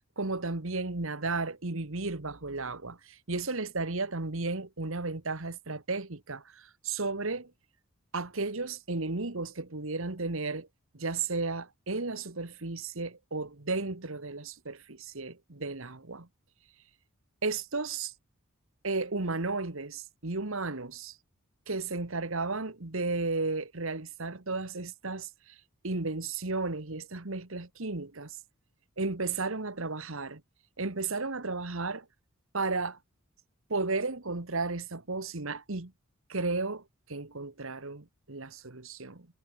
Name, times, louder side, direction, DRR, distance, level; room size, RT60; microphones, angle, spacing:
voice 1, 0.2-7.5 8.1-10.7 10.9-16.3 17.4-18.1 18.8-21.1 21.7-25.3 25.8-28.4 29.0-30.4 30.8-32.0 32.5-33.0 33.7-35.9 36.3-36.8 37.1-39.3, right 3 dB, 65° right, 1.7 m, -34 dB
head